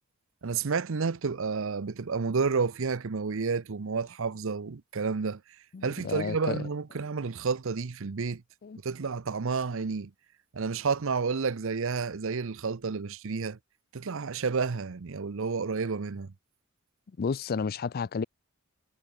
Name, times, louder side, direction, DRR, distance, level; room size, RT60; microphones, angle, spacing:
voice 1, 0.4-5.4 5.8-8.4 8.8-10.1 10.5-13.6 13.9-16.3, right 5 dB, 65° right, 0.7 m, -30 dB
voice 2, 5.7-6.6 8.6-8.8 17.2-18.2, left 5 dB, 45° left, 0.4 m, -31 dB
head